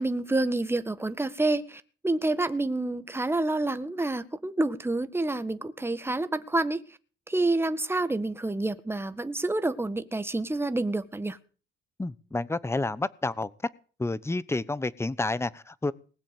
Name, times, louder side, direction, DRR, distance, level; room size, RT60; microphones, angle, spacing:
voice 1, 0.0-6.8 7.3-11.4, right 2 dB, 10° right, 1.7 m, -28 dB
voice 2, 12.0-13.5 14.0-15.9, left 2 dB, 15° left, 1.0 m, -30 dB
20.0 x 7.5 x 9.2 m
cardioid pair, 90°, 20 cm